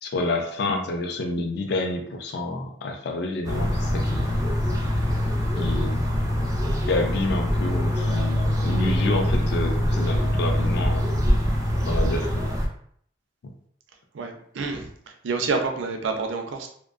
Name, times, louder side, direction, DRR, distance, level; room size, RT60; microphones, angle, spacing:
voice 1, 0.0-4.4 5.6-6.0 6.9-11.1 11.8-12.4, left 2 dB, 60° left, 4 dB, 0.4 m, -28 dB
sound 1, 3.4-12.7, equal, 20° right, 0.4 m, -24 dB
voice 2, 14.1-16.7, right 4 dB, 85° right, 3 dB, 0.4 m, -28 dB
2.5 x 2.1 x 2.4 m, 0.63 s
head